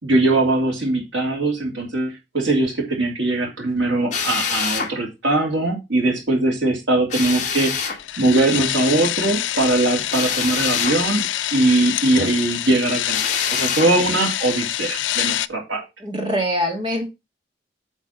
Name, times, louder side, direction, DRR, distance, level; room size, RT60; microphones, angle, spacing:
voice 1, 0.0-7.7 8.2-11.2 11.5-13.2 13.5-15.8, right 2 dB, 90° right, 2.8 m, -21 dB
Drill, 4.1-4.9 7.1-8.0 10.1-11.0 13.1-13.9, left 6 dB, 40° left, 1.8 m, -25 dB
sound 1, 7.4-15.5, left 13 dB, 90° left, 0.4 m, -26 dB
voice 2, 16.0-17.1, equal, 25° right, 1.9 m, -23 dB
8.1 x 3.5 x 5.6 m
head